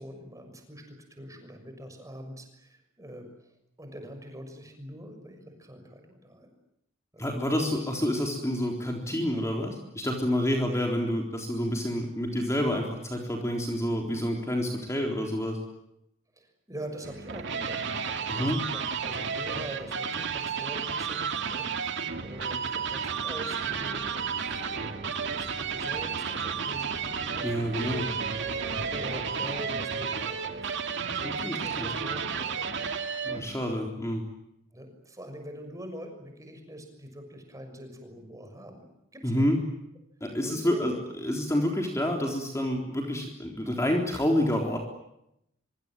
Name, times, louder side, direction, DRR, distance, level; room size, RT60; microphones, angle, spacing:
voice 1, 0.0-3.5 3.8-6.5 7.1-7.3 16.4-28.4 28.7-32.9 33.3-33.4 34.7-38.9 39.1-39.5 40.4-41.0, equal, 15° right, 5 dB, 6.5 m, -44 dB
voice 2, 7.2-15.6 18.3-18.6 27.4-28.1 31.2-31.9 33.2-34.2 39.2-39.6 40.2-44.8, equal, 15° left, 1 dB, 3.8 m, -28 dB
sound 1, 17.0-33.5, right 6 dB, 60° right, 2.4 m, -32 dB
sound 2, 22.0-29.6, right 1 dB, 45° right, 3.0 m, -44 dB
25.5 x 25.0 x 9.1 m, 0.80 s
head